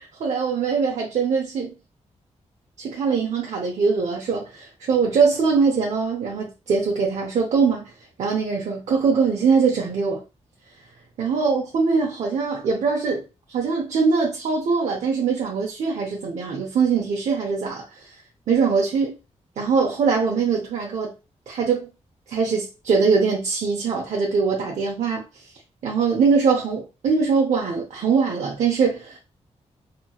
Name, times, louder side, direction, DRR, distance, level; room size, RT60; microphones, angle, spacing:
voice 1, 0.2-1.8 2.8-7.9 8.2-10.2 11.2-13.2 13.5-18.1 18.5-19.2 19.6-21.1 21.5-21.9 22.3-25.3 25.8-29.2, right 5 dB, 80° right, 0.7 m, -22 dB
2.9 x 2.8 x 2.2 m
wide cardioid pair, 130°, 12 cm